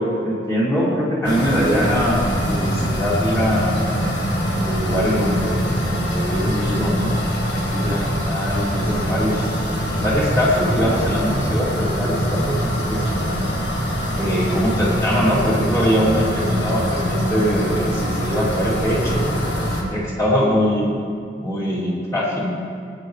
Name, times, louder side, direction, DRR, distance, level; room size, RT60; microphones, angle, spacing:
voice 1, 0.0-3.8 4.6-5.7 5.9-7.2 7.5-13.4 14.1-20.9 21.4-22.5, equal, 20° left, -7 dB, 2.7 m, -22 dB
sound 1, 1.2-19.8, equal, 75° left, 1.8 m, -23 dB
19.0 x 9.2 x 3.2 m, 2.2 s
head